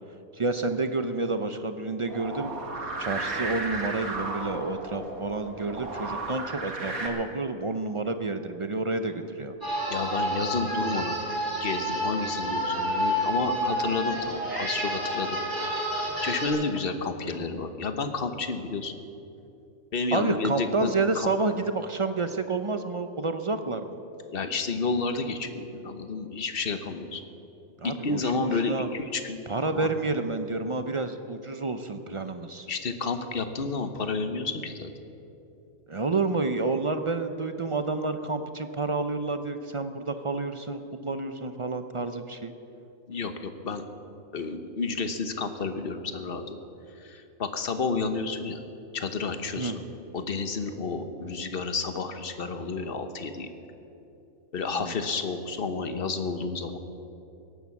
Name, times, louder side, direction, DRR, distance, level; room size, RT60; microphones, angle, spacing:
voice 1, 0.3-2.5 3.0-9.5 20.1-24.0 27.8-28.9 29.5-32.7 35.9-42.5 49.6-49.8 54.7-55.0, right 3 dB, 45° right, 8 dB, 0.4 m, -29 dB
sound 1, 2.1-7.1, right 2 dB, 80° right, 2.2 m, -34 dB
sound 2, 9.6-16.5, equal, 15° right, 4.1 m, -29 dB
voice 2, 9.9-11.2 11.6-15.4 16.2-18.9 19.9-21.3 24.3-27.2 27.8-29.4 29.7-29.9 32.7-34.9 43.1-43.9 44.3-46.6 47.0-48.6 48.9-49.8 50.1-53.5 54.5-56.8, left 4 dB, 45° left, 8 dB, 1.1 m, -30 dB
17.5 x 11.0 x 7.2 m, 2.8 s
omnidirectional pair, 1.5 m